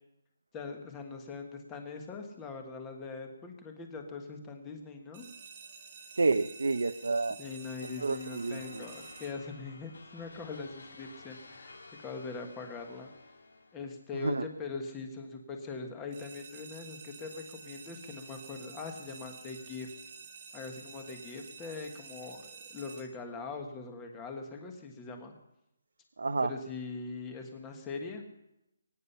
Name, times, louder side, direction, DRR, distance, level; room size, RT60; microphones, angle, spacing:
voice 1, 0.5-5.3 7.4-13.1 13.7-19.9 20.5-25.3 26.4-28.2, left 4 dB, 10° left, 4 dB, 1.5 m, -42 dB
sound 1, 5.1-10.0 16.1-23.0, right 5 dB, 30° right, 1.6 m, -50 dB
voice 2, 6.1-7.4 8.0-8.8 14.2-14.5 26.2-26.5, right 3 dB, 90° right, 8 dB, 0.8 m, -29 dB
sound 2, 7.8-14.0, left 3 dB, 90° left, 2.3 m, -53 dB
23.0 x 9.7 x 5.6 m, 0.88 s
hypercardioid pair, 175°, 0 cm